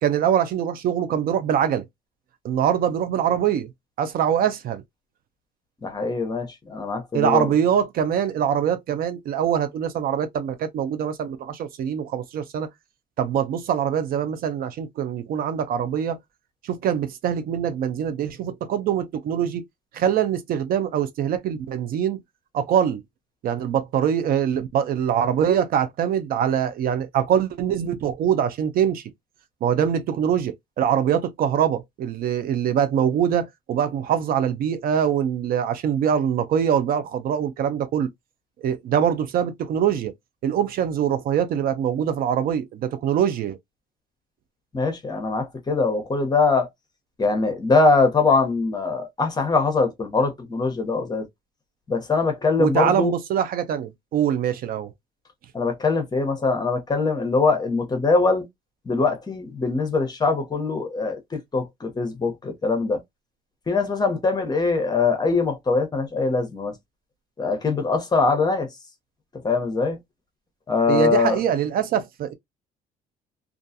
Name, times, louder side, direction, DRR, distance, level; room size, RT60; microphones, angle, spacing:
voice 1, 0.0-1.8 2.4-3.7 4.0-4.8 7.1-12.7 13.2-16.2 16.6-19.6 19.9-22.2 22.5-23.0 23.4-29.0 29.6-38.1 38.6-40.1 40.4-43.6 52.6-54.9 70.9-72.3, right 9 dB, 60° right, 0.5 m, -23 dB
voice 2, 5.8-7.5 44.7-46.7 47.2-51.3 51.9-53.1 55.5-58.4 58.9-63.0 63.7-66.7 67.4-68.7 69.4-70.0 70.7-71.4, left 4 dB, 25° left, 0.8 m, -22 dB
2.4 x 2.2 x 2.6 m
cardioid pair, 110°, 17 cm